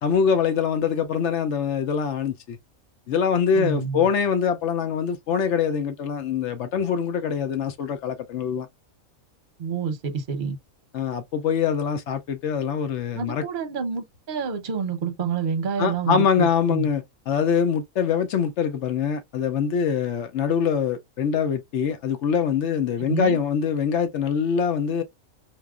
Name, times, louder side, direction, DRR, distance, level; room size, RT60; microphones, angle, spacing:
voice 1, 0.0-2.6 3.1-8.7 10.9-13.4 15.8-25.0, left 7 dB, 65° left, 0.8 m, -24 dB
voice 2, 3.5-4.1 9.6-10.6 13.2-16.9 23.1-23.4, right 6 dB, 45° right, 0.8 m, -28 dB
4.6 x 2.5 x 2.3 m
omnidirectional pair, 1.5 m